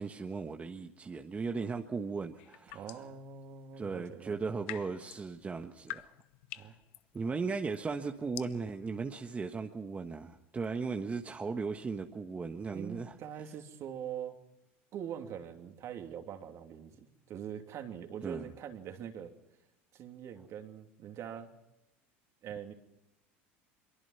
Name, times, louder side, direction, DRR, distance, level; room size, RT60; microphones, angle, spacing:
voice 1, 0.0-2.8 3.8-6.1 6.5-6.7 7.1-13.1 18.2-18.5, right 4 dB, 20° right, 4 dB, 1.4 m, -37 dB
sound 1, 2.4-3.2 4.3-12.0, left 17 dB, 70° left, 0.8 m, -49 dB
voice 2, 2.7-4.5 6.6-6.7 12.7-14.4 14.9-19.3 19.9-21.5 22.4-22.7, right 9 dB, 50° right, 5 dB, 3.0 m, -43 dB
23.5 x 23.0 x 5.8 m, 0.86 s
hypercardioid pair, 95°, 6 cm